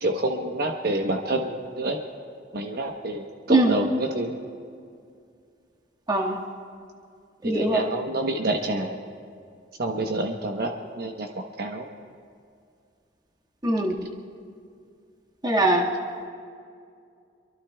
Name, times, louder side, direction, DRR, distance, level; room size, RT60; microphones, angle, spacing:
voice 1, 0.0-2.0 2.5-4.4 7.4-9.0 9.8-11.9, right 1 dB, 55° right, 2 dB, 1.0 m, -28 dB
voice 2, 6.1-6.4 7.4-7.8 13.6-13.9 15.4-15.9, right 1 dB, 25° right, -1 dB, 1.7 m, -21 dB
25.5 x 24.0 x 2.3 m, 2.3 s
head